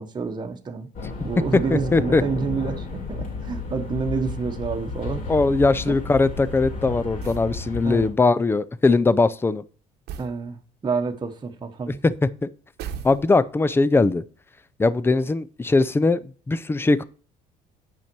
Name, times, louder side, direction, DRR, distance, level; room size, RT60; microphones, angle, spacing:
voice 1, 0.0-0.9 1.2-5.3 5.9-6.0 7.8-8.1 10.2-12.0, right 5 dB, 25° right, 1.1 m, -28 dB
sound 1, 0.9-8.1, left 3 dB, 50° left, 3.1 m, -32 dB
voice 2, 1.7-2.2 5.3-9.6 11.9-12.5 13.0-14.2 14.8-16.2 16.5-17.0, left 3 dB, 15° left, 0.5 m, -20 dB
sound 2, 7.2-7.6 10.1-10.4 12.8-13.6, right 8 dB, 80° right, 1.1 m, -36 dB
8.8 x 5.7 x 4.6 m
cardioid pair, 110°, 17 cm